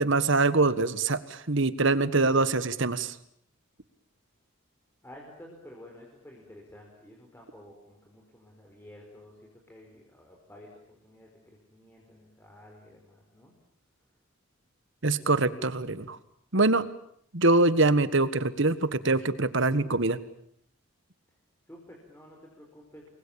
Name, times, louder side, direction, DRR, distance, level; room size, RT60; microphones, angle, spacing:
voice 1, 0.0-3.1 15.0-16.2 16.5-16.9 17.3-20.2, right 3 dB, 60° right, 14 dB, 1.6 m, -24 dB
voice 2, 5.0-13.5 21.7-23.1, left 1 dB, 10° left, -1 dB, 5.0 m, -51 dB
29.0 x 22.5 x 8.8 m, 0.67 s
head